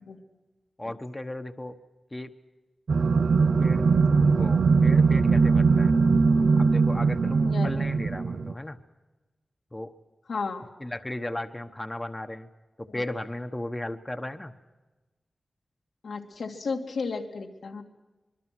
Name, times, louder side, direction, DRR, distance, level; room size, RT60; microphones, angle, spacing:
voice 1, 0.8-1.8 2.1-2.3 3.6-3.8 4.3-6.0 6.6-8.8 9.7-9.9 10.8-12.5 12.8-14.5, left 1 dB, 15° left, 7 dB, 1.2 m, -36 dB
sound 1, 2.9-8.5, right 4 dB, 70° right, 0.6 m, -21 dB
voice 2, 10.3-10.7 12.9-13.0 16.0-17.8, left 4 dB, 90° left, 1 dB, 2.8 m, -33 dB
25.5 x 22.5 x 6.1 m, 1.1 s
wide cardioid pair, 90°, 0 cm